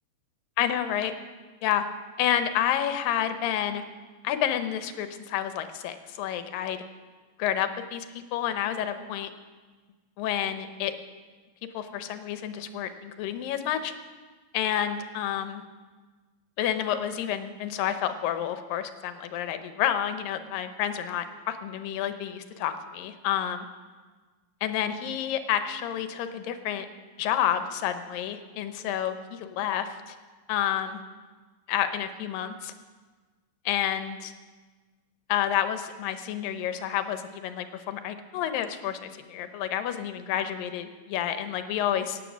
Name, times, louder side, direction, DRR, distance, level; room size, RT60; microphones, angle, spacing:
voice 1, 0.6-1.1 1.6-1.9 2.2-3.8 4.2-6.8 7.4-9.3 10.2-10.9 11.7-13.9 14.5-15.6 16.6-23.7 24.6-26.9 27.2-30.2 30.5-31.0 31.7-32.7 33.7-34.3 35.3-42.2, left 10 dB, 80° left, 9 dB, 2.5 m, -29 dB
16.5 x 9.3 x 6.2 m, 1.4 s
omnidirectional pair, 4.0 m